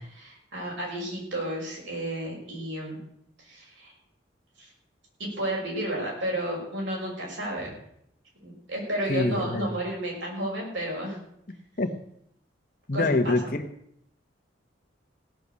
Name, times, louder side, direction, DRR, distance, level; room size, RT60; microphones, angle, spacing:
voice 1, 0.0-3.0 3.4-3.9 4.6-4.7 5.2-7.7 8.4-11.2 12.9-13.3, right 1 dB, 80° right, -2 dB, 6.4 m, -32 dB
voice 2, 9.1-9.7 11.8-11.9 12.9-13.6, left 2 dB, 45° left, 7 dB, 1.3 m, -25 dB
17.0 x 6.9 x 8.3 m, 0.73 s
head